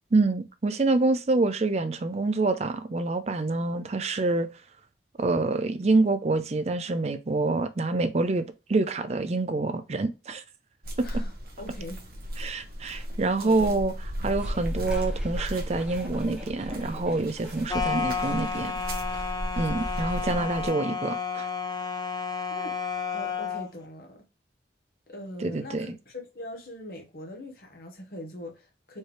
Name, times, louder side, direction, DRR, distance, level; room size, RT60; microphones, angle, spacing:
voice 1, 0.1-4.5 5.2-10.4 12.4-13.9 14.2-18.8 19.6-21.5 25.4-25.9, right 3 dB, 35° right, 0.4 m, -26 dB
sound 1, 10.8-20.7, equal, 55° right, 1.2 m, -35 dB
voice 2, 11.0-12.0 13.2-13.7 20.3-20.5 22.5-22.8 23.1-24.2 25.1-29.0, left 1 dB, 55° left, 1.1 m, -41 dB
sound 2, 14.3-20.2, equal, 5° right, 1.2 m, -47 dB
sound 3, 17.7-23.7, left 5 dB, 20° left, 0.6 m, -31 dB
4.5 x 3.1 x 3.3 m
head